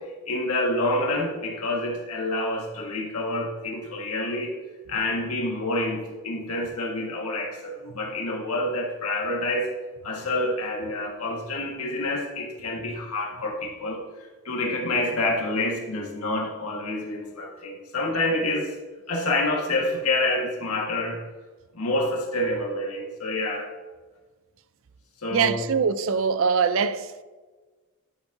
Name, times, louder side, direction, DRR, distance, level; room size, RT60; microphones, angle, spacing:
voice 1, 0.0-4.6 4.9-9.7 10.0-18.7 19.1-21.2 21.7-23.7 25.2-25.7, left 1 dB, 90° left, 1.6 m, -28 dB
voice 2, 25.3-27.2, right 6 dB, 60° right, 0.4 m, -23 dB
11.5 x 7.1 x 2.7 m
head